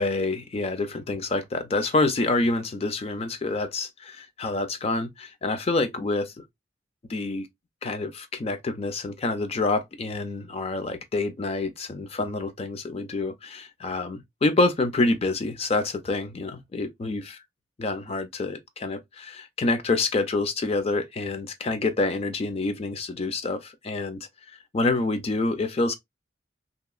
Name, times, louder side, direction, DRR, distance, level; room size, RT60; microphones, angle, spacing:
voice 1, 0.0-6.4 7.1-7.5 7.8-17.4 17.8-24.3 24.7-25.9, left 3 dB, 35° left, 0.4 m, -27 dB
2.8 x 2.4 x 2.3 m
head